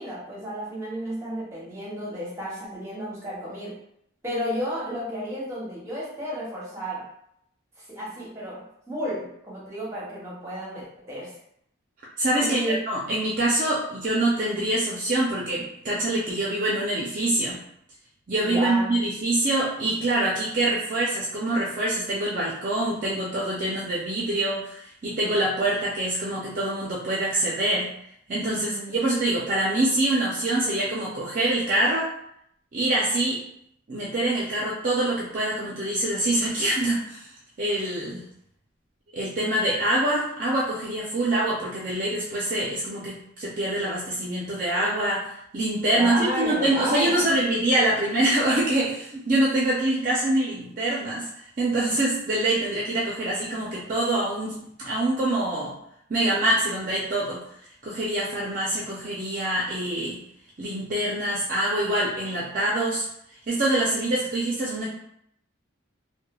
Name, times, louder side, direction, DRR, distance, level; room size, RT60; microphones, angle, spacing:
voice 1, 0.0-3.8 4.2-7.1 7.9-11.3 12.4-12.8 18.4-19.0 28.4-29.0 45.9-47.4, equal, 15° right, -6 dB, 0.8 m, -32 dB
voice 2, 12.2-17.6 18.3-27.9 28.3-32.1 32.7-33.4 33.9-37.3 37.6-38.3 39.1-55.7 56.1-57.4 57.8-60.2 60.6-63.1 63.5-64.9, right 1 dB, 40° right, -5 dB, 0.5 m, -25 dB
3.1 x 2.2 x 2.3 m, 0.72 s
head